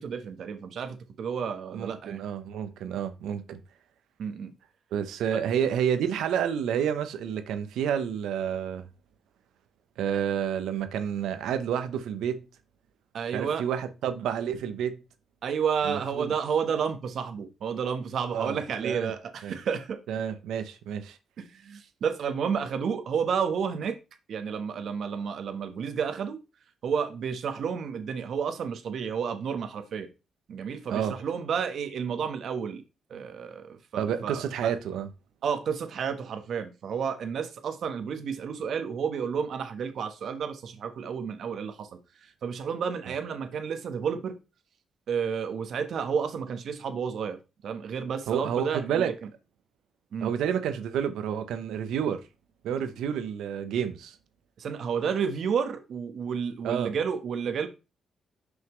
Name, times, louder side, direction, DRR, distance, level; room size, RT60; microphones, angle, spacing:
voice 1, 0.0-2.2 4.2-4.5 5.3-5.4 13.1-13.6 15.4-20.0 21.4-24.0 24.3-26.4 26.8-30.1 30.5-32.8 33.1-34.7 35.4-41.9 42.4-44.3 45.1-47.4 47.6-49.3 50.1-50.3 54.6-57.7, right 6 dB, 70° right, 1.1 m, -31 dB
voice 2, 1.7-3.6 4.9-8.8 10.0-12.4 13.3-15.0 15.8-16.3 18.3-18.6 18.8-19.1 19.4-19.5 20.1-21.2 30.9-31.1 34.0-35.1 48.3-49.1 50.2-52.2 52.6-54.2 56.6-56.9, right 8 dB, 85° right, 0.9 m, -29 dB
6.2 x 5.6 x 3.1 m
cardioid pair, 70°, 0 cm